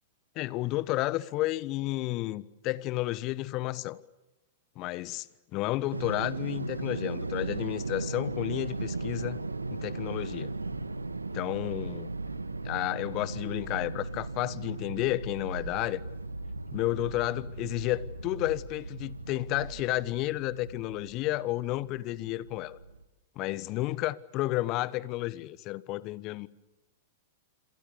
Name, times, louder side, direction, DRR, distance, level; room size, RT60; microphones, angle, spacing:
voice 1, 0.3-4.0 4.8-5.3 5.5-9.4 9.7-10.5 11.3-12.1 12.6-16.0 16.7-22.8 23.4-26.5, left 17 dB, 40° left, 1.2 m, -31 dB
sound 1, 5.9-23.0, right 3 dB, 85° right, 1.4 m, -37 dB
27.5 x 27.5 x 7.0 m
figure-of-eight pair, 100°, 0 cm